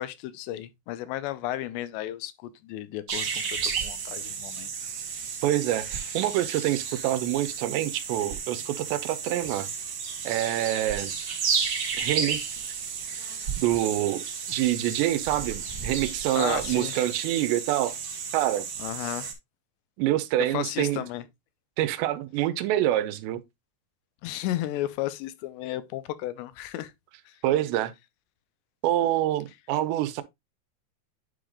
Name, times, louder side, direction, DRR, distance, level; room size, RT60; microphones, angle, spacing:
voice 1, 0.0-4.7 16.4-16.9 18.8-19.3 20.5-21.3 24.2-26.9 27.3-27.4, left 14 dB, 85° left, 3.0 m, -34 dB
sound 1, 3.1-19.3, right 6 dB, 70° right, 1.2 m, -33 dB
voice 2, 5.4-9.7 10.2-11.1 12.0-12.6 13.6-18.0 18.3-18.7 20.0-21.0 21.8-23.4 27.4-27.9 28.8-30.2, right 13 dB, 90° right, 2.9 m, -26 dB
10.0 x 5.0 x 2.3 m
omnidirectional pair, 4.9 m